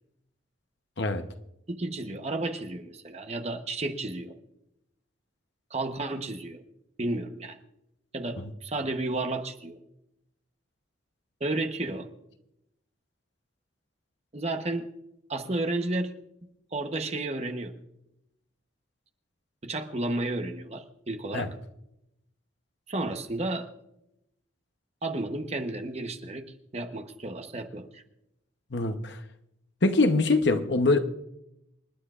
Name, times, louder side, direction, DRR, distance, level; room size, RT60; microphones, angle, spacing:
voice 1, 1.7-4.3 5.7-6.6 7.0-7.6 8.1-9.8 11.4-12.1 14.3-14.9 15.3-16.1 16.7-17.7 19.6-21.5 22.9-23.7 25.0-26.4 26.7-28.0, right 2 dB, 30° right, 1.0 m, -32 dB
voice 2, 28.7-29.2 29.8-31.0, left 2 dB, 55° left, 0.9 m, -24 dB
28.0 x 10.0 x 2.5 m
head